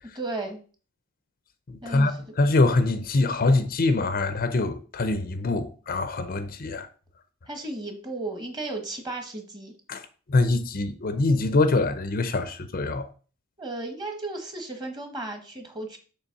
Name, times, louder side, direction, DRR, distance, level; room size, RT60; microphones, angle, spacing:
voice 1, 0.1-0.6 1.8-2.4 7.5-9.7 13.6-16.0, right 2 dB, 20° right, 1.3 m, -34 dB
voice 2, 1.7-2.1 2.4-6.9 9.9-10.0 10.3-13.1, left 2 dB, 40° left, 0.6 m, -24 dB
6.8 x 3.3 x 5.8 m
head